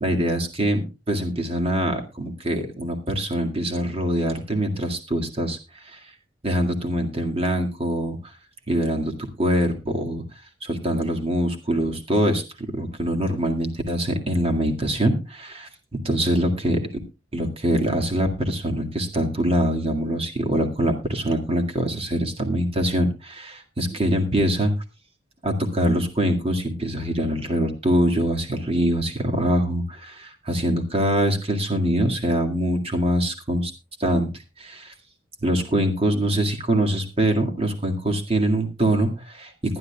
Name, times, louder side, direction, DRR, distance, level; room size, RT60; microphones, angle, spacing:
voice 1, 0.0-5.6 5.9-6.0 6.4-8.2 8.7-10.2 10.6-15.7 16.0-16.8 17.3-24.7 25.4-33.7 34.0-34.3 34.6-34.9 35.4-39.8, equal, 35° right, 3 dB, 2.0 m, -24 dB
21.0 x 10.5 x 2.3 m, 0.28 s
head